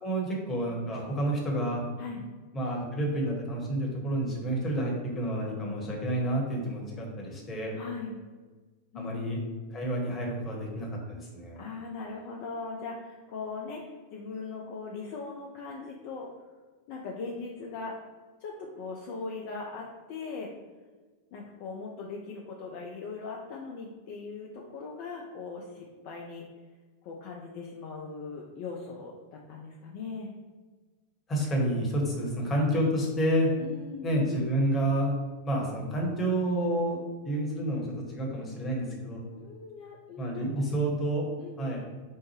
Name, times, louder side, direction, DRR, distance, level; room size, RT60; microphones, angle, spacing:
voice 1, 0.0-1.8 2.5-7.7 8.9-9.4 9.7-11.6 31.3-33.5 34.0-35.2 35.4-37.0 37.2-39.2 40.2-41.3 41.6-41.8, right 1 dB, 20° left, -1 dB, 1.0 m, -29 dB
voice 2, 7.8-8.1 8.9-9.3 11.5-16.3 16.9-17.9 18.4-20.5 21.3-26.4 27.0-30.3 33.6-34.2 39.4-40.6 41.4-41.7, left 4 dB, 45° left, -1 dB, 0.4 m, -40 dB
4.3 x 2.1 x 3.2 m, 1.4 s
figure-of-eight pair, 90°, 0 cm